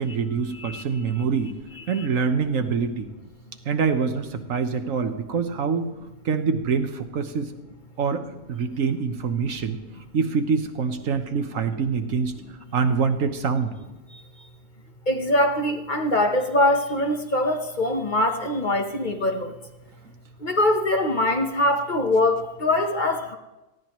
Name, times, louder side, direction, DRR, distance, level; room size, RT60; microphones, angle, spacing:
voice 1, 0.0-1.5 1.9-3.1 3.7-5.9 6.2-7.5 8.0-9.8 10.1-12.3 12.7-13.7, right 5 dB, 75° right, 7 dB, 1.4 m, -25 dB
voice 2, 1.8-2.1 14.1-14.2 15.1-19.5 20.4-23.4, left 1 dB, 40° left, 4 dB, 1.1 m, -23 dB
19.0 x 14.5 x 3.1 m, 1.0 s
omnidirectional pair, 1.4 m